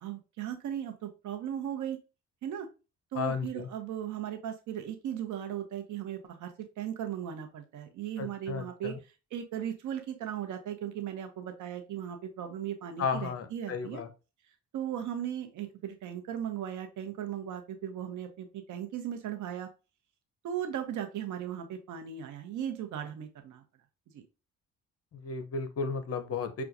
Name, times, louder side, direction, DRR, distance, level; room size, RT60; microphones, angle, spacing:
voice 1, 0.0-2.0 2.4-2.7 3.1-8.9 9.3-14.0 14.7-19.7 20.4-23.6 24.1-24.2, right 10 dB, 75° right, 6 dB, 0.8 m, -37 dB
voice 2, 3.1-3.7 8.2-9.0 13.0-14.1 25.1-26.6, left 5 dB, 50° left, 10 dB, 0.7 m, -34 dB
5.9 x 2.3 x 2.6 m, 0.30 s
cardioid pair, 90°, 30 cm